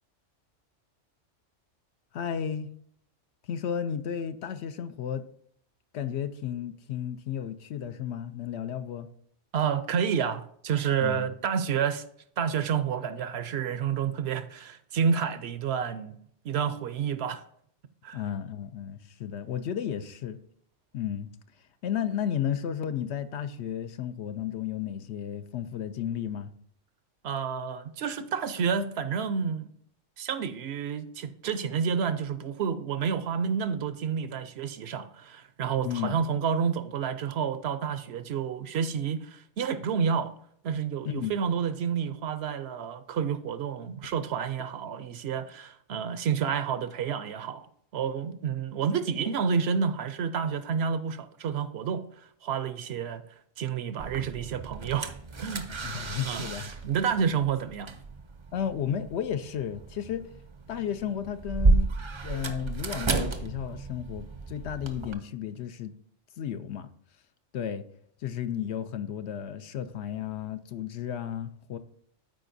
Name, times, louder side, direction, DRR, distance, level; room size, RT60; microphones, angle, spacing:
voice 1, 2.1-2.7 3.4-5.2 5.9-9.1 11.0-11.3 18.1-20.4 20.9-21.3 21.8-26.5 35.8-36.2 41.1-41.3 55.7-56.7 58.5-60.2 60.7-65.9 66.4-66.9 67.5-67.8 68.2-71.8, left 9 dB, 70° left, 0.8 m, -33 dB
voice 2, 9.5-12.0 12.4-16.2 16.4-17.4 18.0-18.2 27.2-29.7 30.2-40.3 40.6-47.7 47.9-52.0 52.4-53.2 53.6-55.1 55.4-55.7 56.3-56.5 56.8-57.9, right 7 dB, 65° right, 0.8 m, -29 dB
sound 1, 54.0-65.1, right 3 dB, 35° right, 0.4 m, -32 dB
12.5 x 4.8 x 2.6 m
omnidirectional pair, 1.2 m